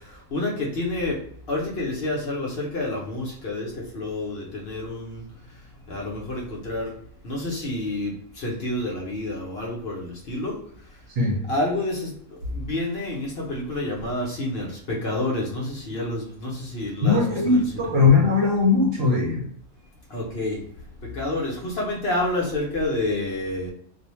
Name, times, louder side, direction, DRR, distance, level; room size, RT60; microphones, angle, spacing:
voice 1, 0.3-1.2 1.5-5.2 5.9-6.9 7.2-10.5 11.5-12.1 12.5-17.8 20.1-20.6 21.1-23.7, left 2 dB, 55° left, -3 dB, 0.9 m, -28 dB
voice 2, 17.0-19.4, left 4 dB, 60° right, -1 dB, 0.8 m, -19 dB
2.5 x 2.1 x 2.9 m, 0.68 s
omnidirectional pair, 1.4 m